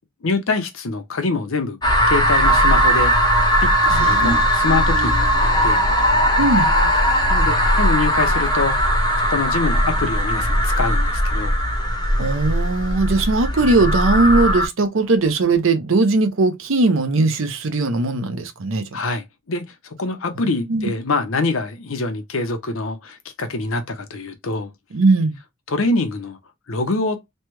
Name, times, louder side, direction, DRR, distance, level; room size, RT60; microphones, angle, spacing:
voice 1, 0.2-1.8 2.1-3.1 3.6-5.8 7.3-8.8 9.2-11.5 18.9-24.7 25.7-26.4 26.7-27.2, left 3 dB, 75° left, 0.7 m, -25 dB
sound 1, 1.8-14.7, equal, 20° left, 0.7 m, -18 dB
voice 2, 3.9-4.4 4.7-5.1 6.4-6.7 12.2-18.9 20.4-20.9 24.9-25.4, right 3 dB, 75° right, 0.7 m, -19 dB
3.2 x 2.2 x 3.0 m
head